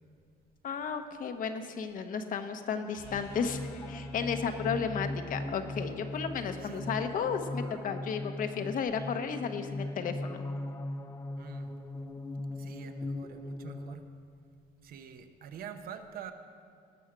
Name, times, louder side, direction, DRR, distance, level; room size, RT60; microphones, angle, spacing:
voice 1, 0.6-3.6 3.9-10.4, left 6 dB, 55° left, 7 dB, 1.0 m, -33 dB
sound 1, 2.9-9.0, left 5 dB, 70° left, 1.6 m, -51 dB
sound 2, 3.1-14.0, left 2 dB, 15° left, 0.6 m, -39 dB
voice 2, 6.6-6.9 11.4-11.7 12.5-14.0 14.8-16.3, right 8 dB, 60° right, 8 dB, 0.9 m, -46 dB
18.0 x 6.3 x 6.1 m, 2.3 s
cardioid pair, 110°, 17 cm